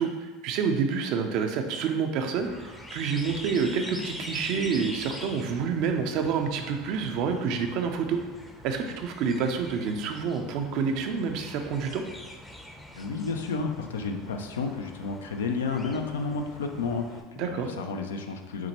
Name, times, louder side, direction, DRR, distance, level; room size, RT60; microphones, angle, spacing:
voice 1, 0.0-8.2 8.6-12.0 17.4-17.7, right 6 dB, 60° right, 5 dB, 0.4 m, -28 dB
sound 1, 2.4-17.2, left 1 dB, 10° left, 0.5 m, -44 dB
voice 2, 13.0-18.7, left 4 dB, 85° left, 5 dB, 0.4 m, -31 dB
5.8 x 2.1 x 2.9 m, 1.2 s
hypercardioid pair, 85°, 0 cm